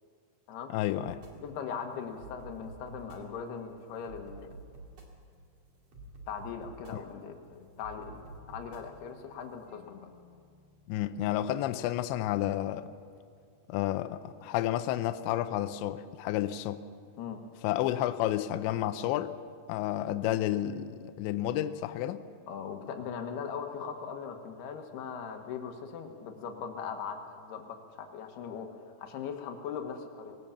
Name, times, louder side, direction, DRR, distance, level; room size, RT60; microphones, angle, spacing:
voice 1, 0.7-1.2 6.9-7.0 10.9-12.9 13.7-16.8 17.6-19.3 19.7-22.2, left 13 dB, 85° left, 12 dB, 3.0 m, -31 dB
sound 1, 1.1-13.6, right 2 dB, 40° right, 3.0 m, -52 dB
voice 2, 1.4-4.5 6.3-10.1 17.2-17.4 22.5-30.4, left 6 dB, 70° left, 5 dB, 3.2 m, -40 dB
20.5 x 18.0 x 7.2 m, 2.1 s
omnidirectional pair, 5.1 m